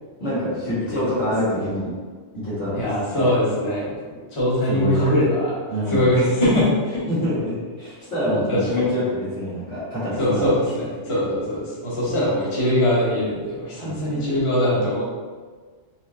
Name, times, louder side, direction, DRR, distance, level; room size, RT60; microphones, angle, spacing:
voice 1, 0.2-1.9 2.4-2.8 3.1-3.3 4.1-4.2 4.7-5.2 5.7-6.1 7.1-10.5 11.1-11.2 13.8-14.3, left 1 dB, 70° left, -10 dB, 2.0 m, -26 dB
voice 2, 0.7-1.7 2.7-4.0 4.3-5.5 5.9-7.0 8.5-8.8 10.2-15.1, left 1 dB, 25° left, -8 dB, 1.0 m, -22 dB
4.7 x 3.0 x 2.6 m, 1.5 s
omnidirectional pair, 1.3 m